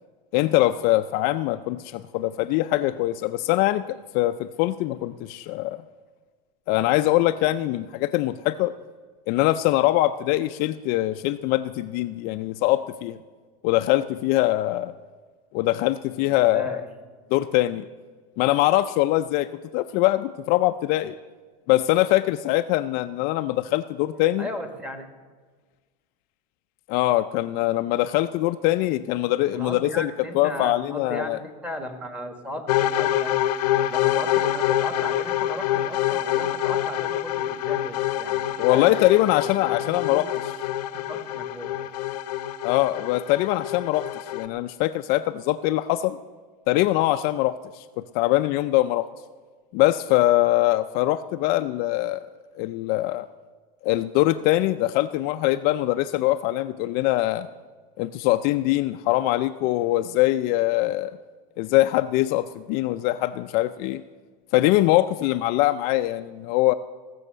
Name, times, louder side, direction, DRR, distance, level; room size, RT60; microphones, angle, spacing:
voice 1, 0.3-5.8 6.7-8.7 9.3-13.2 13.6-14.9 15.5-16.8 17.3-17.8 18.4-21.1 21.7-24.5 26.9-31.4 38.6-40.3 42.6-44.1 44.3-46.2 46.7-47.8 48.1-49.1 49.7-52.2 52.6-53.3 53.8-57.5 58.0-61.2 61.6-64.0 64.5-66.7, left 16 dB, 50° left, 10 dB, 0.4 m, -23 dB
voice 2, 16.2-16.8 24.4-25.0 29.5-33.4 33.9-38.9 39.4-40.3 40.9-41.8, left 1 dB, 5° right, 5 dB, 1.4 m, -36 dB
sound 1, 32.7-44.5, left 12 dB, 85° left, 0.8 m, -26 dB
16.5 x 7.1 x 6.6 m, 1.4 s
supercardioid pair, 135°, 20 cm